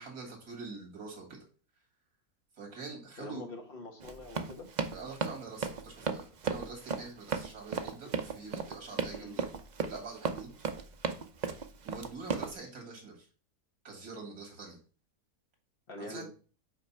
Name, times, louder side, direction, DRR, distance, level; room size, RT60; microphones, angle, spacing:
voice 1, 0.0-1.4 2.6-3.4 4.9-9.5 9.9-10.5 11.8-13.3 13.8-14.8 16.0-16.2, right 4 dB, 80° right, 1 dB, 2.5 m, -45 dB
voice 2, 3.2-4.7 9.1-9.3 15.9-16.3, left 1 dB, 40° left, 3 dB, 1.5 m, -44 dB
Run, 4.0-12.5, right 5 dB, 50° right, 0.5 m, -35 dB
5.8 x 4.6 x 5.5 m, 0.38 s
omnidirectional pair, 1.5 m